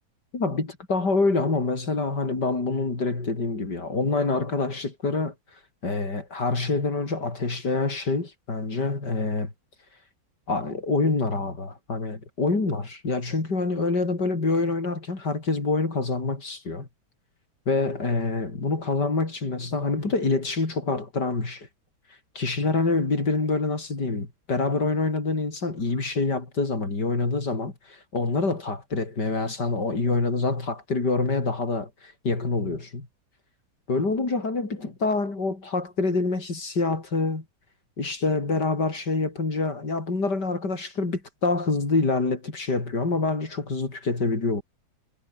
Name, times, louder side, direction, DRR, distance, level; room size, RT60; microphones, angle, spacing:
voice 1, 0.3-5.3 5.8-9.5 10.5-16.9 17.7-21.7 22.4-33.1 33.9-37.4 38.0-44.6, left 3 dB, 80° left, 5.2 m, -26 dB
omnidirectional pair, 1.8 m